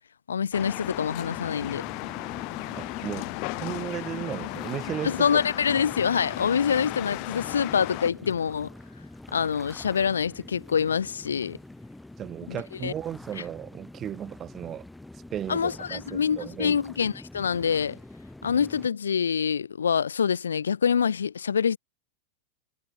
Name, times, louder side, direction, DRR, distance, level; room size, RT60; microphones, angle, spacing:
voice 1, 0.3-1.8 5.0-8.7 9.3-11.6 12.5-12.9 15.5-18.0 18.4-21.8, left 7 dB, 70° left, 0.3 m, -26 dB
sound 1, 0.5-8.1, left 38 dB, 45° left, 1.3 m, -35 dB
sound 2, 1.2-18.9, left 2 dB, 5° left, 5.9 m, -46 dB
voice 2, 2.8-3.3 3.6-5.4 12.2-14.9 15.3-16.8, right 10 dB, 30° right, 0.7 m, -35 dB
figure-of-eight pair, 90°, 0 cm